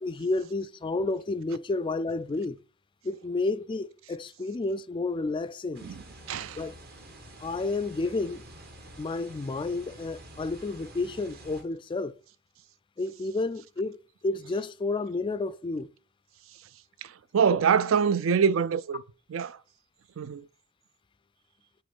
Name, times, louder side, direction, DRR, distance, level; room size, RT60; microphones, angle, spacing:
voice 1, 0.0-2.6 3.0-5.9 6.6-6.8 7.4-8.4 9.0-12.2 13.0-14.0 14.2-15.9 17.5-17.6, left 3 dB, 25° left, 0.3 m, -31 dB
sound 1, 5.7-11.6, right 1 dB, 50° right, 1.4 m, -48 dB
voice 2, 6.3-6.6 17.0-19.0 19.3-19.6 20.2-20.4, right 6 dB, 70° right, 0.4 m, -25 dB
8.5 x 3.1 x 5.3 m
head